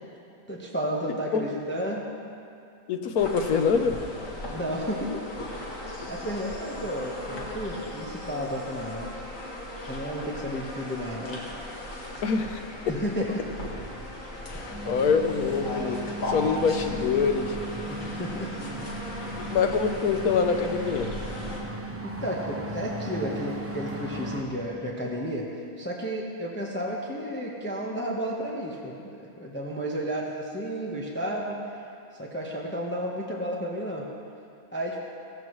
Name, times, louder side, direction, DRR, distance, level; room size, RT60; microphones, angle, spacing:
voice 1, 0.5-2.1 4.5-5.2 5.6-9.1 9.9-11.6 12.9-13.4 14.5-14.8 17.9-18.5 19.3-19.6 22.0-25.5 25.8-31.6 32.2-34.1 34.7-35.0, equal, 10° left, -3 dB, 1.0 m, -32 dB
voice 2, 2.9-3.9 12.2-12.6 12.9-13.0 14.5-16.0 16.3-17.6 19.4-21.1, left 6 dB, 90° left, 6 dB, 1.3 m, -25 dB
sound 1, 3.2-21.6, left 1 dB, 65° left, 2.2 m, -37 dB
sound 2, 14.7-24.4, right 1 dB, 10° right, 0.7 m, -37 dB
15.5 x 14.5 x 3.2 m, 2.5 s
omnidirectional pair, 1.5 m